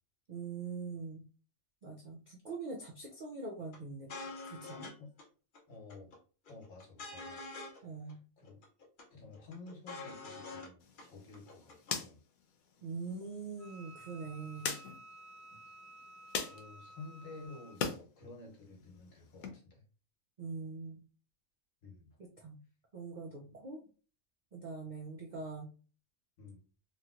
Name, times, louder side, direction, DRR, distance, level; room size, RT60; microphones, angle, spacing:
voice 1, 0.3-1.2 1.8-4.1 4.4-4.9 7.8-8.2 12.8-14.7 20.4-21.0 22.4-22.6 22.9-23.8 24.5-25.7, right 4 dB, 70° right, 0 dB, 0.4 m, -43 dB
sound 1, 3.7-3.8 4.1-4.9 5.2-5.3 5.5-6.2 6.5-7.8 8.1-8.2 8.4-9.0 9.3-10.7 11.0-11.1 11.3-11.9, left 3 dB, 45° left, 0.7 m, -46 dB
voice 2, 5.7-6.1 6.5-7.4 7.7-8.6 9.1-12.2 16.5-19.8 21.8-22.2 26.4-26.6, left 3 dB, 70° left, 0 dB, 1.3 m, -52 dB
sound 2, 10.8-18.0 18.4-19.5, left 6 dB, 85° left, 1.1 m, -43 dB
Wind instrument woodwind instrument, 13.6-17.8, right 1 dB, 40° right, 1.0 m, -54 dB
3.0 x 2.9 x 2.4 m, 0.37 s
omnidirectional pair, 1.4 m